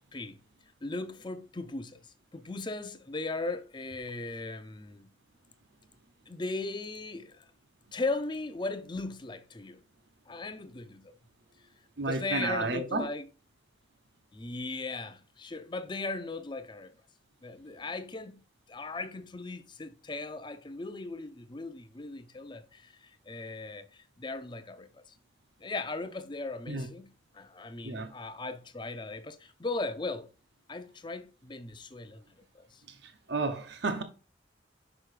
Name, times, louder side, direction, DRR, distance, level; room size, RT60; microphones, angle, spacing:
voice 1, 0.8-2.0 2.3-5.1 6.3-7.4 7.9-9.8 10.3-11.1 12.0-13.2 14.3-16.9 17.4-18.4 18.7-25.0 25.6-30.3 30.7-32.8, left 3 dB, 25° left, 0.6 m, -38 dB
voice 2, 12.0-13.1 26.7-26.9 27.8-28.1 32.9-34.0, right 3 dB, 60° right, 0.9 m, -32 dB
6.2 x 5.3 x 4.9 m
head